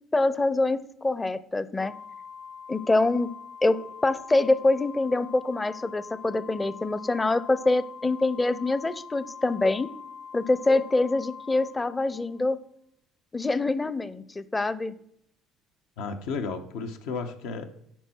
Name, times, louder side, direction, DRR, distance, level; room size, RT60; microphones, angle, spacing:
voice 1, 0.1-1.9 2.7-3.3 3.6-9.9 10.3-12.6 13.3-14.9, left 2 dB, 20° left, 16 dB, 0.6 m, -25 dB
Organ, 1.8-12.5, left 6 dB, 45° left, 1.6 m, -44 dB
voice 2, 16.0-17.7, left 4 dB, 80° left, 7 dB, 1.0 m, -33 dB
10.0 x 4.4 x 4.4 m, 0.73 s
supercardioid pair, 80°, 0 cm